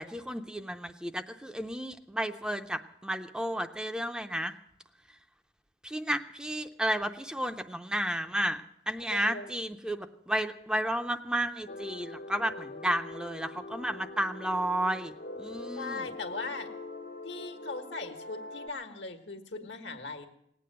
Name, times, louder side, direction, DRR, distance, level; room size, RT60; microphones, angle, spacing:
voice 1, 0.0-4.6 5.8-16.0, right 1 dB, 5° right, 8 dB, 0.5 m, -32 dB
voice 2, 9.1-9.5 15.7-16.7 17.2-20.3, left 3 dB, 75° left, 7 dB, 1.4 m, -39 dB
sound 1, 11.7-18.7, left 2 dB, 60° left, 0.8 m, -43 dB
18.5 x 8.5 x 7.7 m, 0.77 s
head